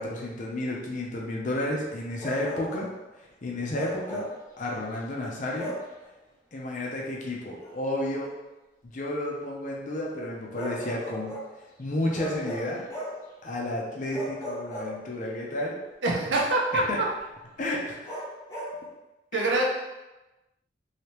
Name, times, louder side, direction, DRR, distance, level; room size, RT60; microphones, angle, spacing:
voice 1, 0.0-2.9 3.1-5.7 6.5-8.3 8.8-11.3 11.8-12.8 13.4-15.8 16.7-17.0 17.6-18.1 19.3-19.6, left 1 dB, 45° left, -2 dB, 0.6 m, -32 dB
Bark, 2.2-2.9 3.7-4.4 5.5-5.9 7.6-7.8 10.5-11.5 12.1-13.3 14.1-15.4 18.0-18.8, equal, 15° left, 0.8 m, -36 dB
voice 2, 16.0-16.8 19.3-19.7, right 2 dB, 75° right, -2 dB, 0.7 m, -24 dB
3.2 x 2.8 x 2.9 m, 1.0 s
head